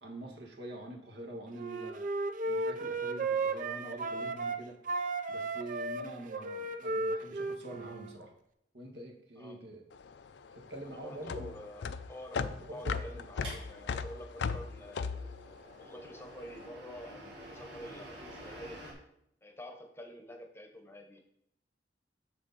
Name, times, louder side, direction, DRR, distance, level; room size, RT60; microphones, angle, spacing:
voice 1, 0.0-2.0 2.4-4.8 5.3-8.3 8.7-9.8 10.5-11.5 12.7-13.2, right 1 dB, 70° right, 1 dB, 1.6 m, -45 dB
Wind instrument woodwind instrument, 1.5-4.6 4.9-8.2, right 3 dB, 50° right, 0.5 m, -34 dB
voice 2, 9.4-9.8 10.8-15.2 15.8-18.9 19.4-21.2, equal, 15° left, 5 dB, 0.9 m, -48 dB
sound 1, 9.9-16.5, left 5 dB, 75° left, 0.4 m, -37 dB
sound 2, 13.4-18.9, right 1 dB, 85° right, 2.1 m, -50 dB
6.8 x 6.4 x 4.0 m, 0.73 s
head